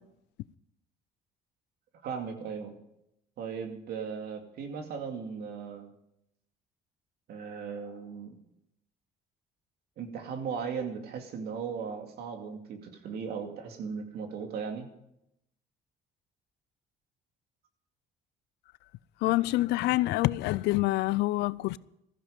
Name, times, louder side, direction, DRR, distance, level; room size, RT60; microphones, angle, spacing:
voice 1, 2.0-2.8 3.4-5.9 7.3-8.3 10.0-14.9, right 6 dB, 70° right, 2.5 m, -37 dB
voice 2, 19.2-21.8, left 18 dB, 85° left, 0.5 m, -26 dB
15.5 x 14.5 x 5.2 m
cardioid pair, 110°, 17 cm